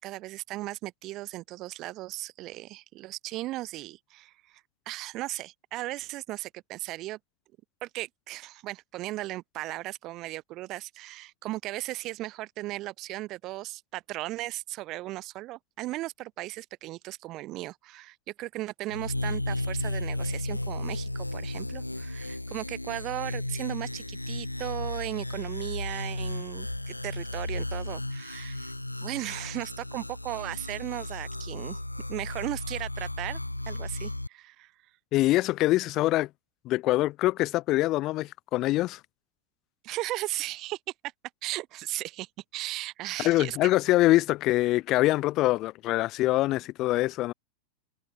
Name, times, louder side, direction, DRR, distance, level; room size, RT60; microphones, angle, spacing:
voice 1, 0.0-7.2 7.8-28.7 29.0-31.8 32.1-33.4 33.7-34.7 39.8-40.8 41.4-43.7, right 17 dB, 35° right, 6.6 m, -36 dB
sound 1, 18.9-34.3, left 1 dB, 85° left, 4.7 m, -34 dB
voice 2, 35.1-36.3 36.7-39.0 43.2-47.3, left 17 dB, 35° left, 0.6 m, -24 dB
figure-of-eight pair, 90°, 0 cm